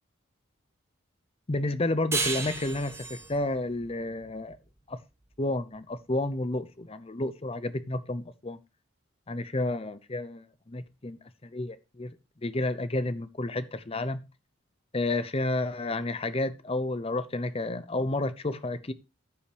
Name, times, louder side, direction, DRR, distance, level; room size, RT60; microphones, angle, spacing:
voice 1, 1.5-4.6 4.9-5.0 5.4-8.6 9.3-12.1 12.4-14.2 14.9-18.9, left 2 dB, 30° left, 14 dB, 0.7 m, -31 dB
sound 1, 2.1-5.3, right 4 dB, 15° right, 1.0 m, -34 dB
14.5 x 5.4 x 3.4 m, 0.27 s
head